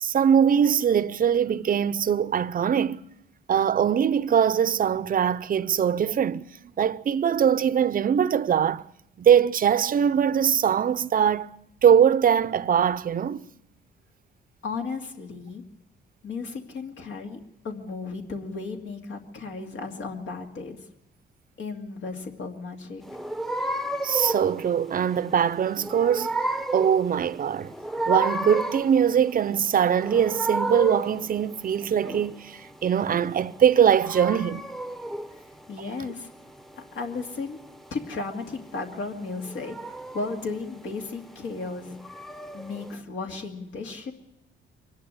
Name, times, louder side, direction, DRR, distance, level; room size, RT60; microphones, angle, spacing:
voice 1, 0.0-3.0 3.5-6.5 6.8-8.8 9.2-11.5 11.8-13.4 24.0-26.3 26.7-27.7 28.1-34.6, right 8 dB, 45° right, 0.7 m, -22 dB
voice 2, 14.6-15.6 16.2-20.9 21.6-23.0 35.3-36.3 36.8-37.6 37.9-42.0 42.5-44.1, left 4 dB, 70° left, 2.4 m, -35 dB
sound 1, 23.0-42.9, right 2 dB, ahead, 0.8 m, -33 dB
24.0 x 11.0 x 9.8 m
cardioid pair, 90°, 20 cm